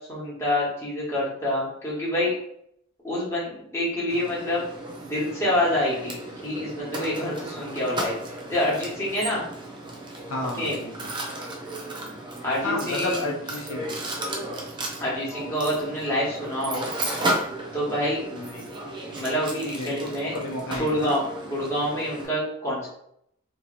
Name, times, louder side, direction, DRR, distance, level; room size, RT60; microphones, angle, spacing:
voice 1, 0.1-2.3 3.0-4.6 5.0-8.2 8.5-9.4 10.6-10.8 12.4-13.2 15.0-16.9 17.7-18.2 19.1-20.4 20.8-22.9, left 1 dB, 15° left, -7 dB, 1.1 m, -27 dB
Mechanisms, 4.1-22.3, right 1 dB, 20° right, 0.4 m, -34 dB
voice 2, 10.3-11.1 12.6-14.0 18.3-18.7 19.8-21.1, left 2 dB, 75° left, 0 dB, 0.6 m, -32 dB
3.0 x 2.7 x 2.5 m, 0.72 s
head